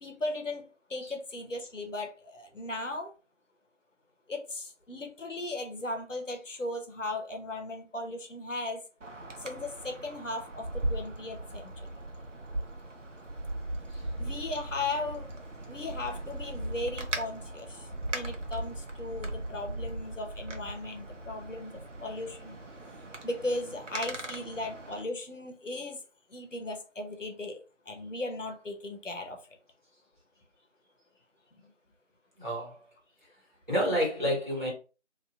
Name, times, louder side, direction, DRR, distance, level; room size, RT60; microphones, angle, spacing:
voice 1, 0.0-3.1 4.3-8.8 9.4-11.9 14.2-15.3 15.7-22.6 23.2-26.0 26.3-27.6 27.9-29.4, left 2 dB, 85° left, 0.9 m, -37 dB
Wind, 9.0-25.0, right 1 dB, 85° right, 0.8 m, -38 dB
voice 2, 32.4-32.8 33.7-34.7, equal, 40° right, 1.2 m, -29 dB
2.7 x 2.5 x 2.2 m
figure-of-eight pair, 180°, 36 cm